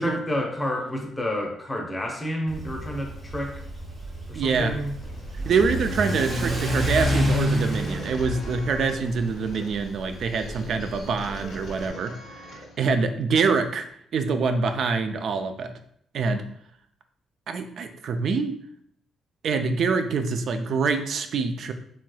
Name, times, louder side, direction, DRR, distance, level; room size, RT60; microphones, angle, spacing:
voice 1, 0.0-3.6 4.3-4.9, equal, 15° left, 1 dB, 0.7 m, -29 dB
Car / Accelerating revving vroom, 2.5-11.9, equal, 25° right, 1.2 m, -29 dB
voice 2, 4.4-4.8 5.4-12.2 12.8-13.9 14.1-15.7 16.1-16.5 17.5-18.6 19.4-21.7, right 4 dB, 65° right, 8 dB, 0.3 m, -25 dB
sound 1, 5.0-12.9, left 1 dB, 65° left, 0.6 m, -43 dB
3.1 x 2.8 x 2.2 m, 0.67 s
cardioid pair, 90°, 0 cm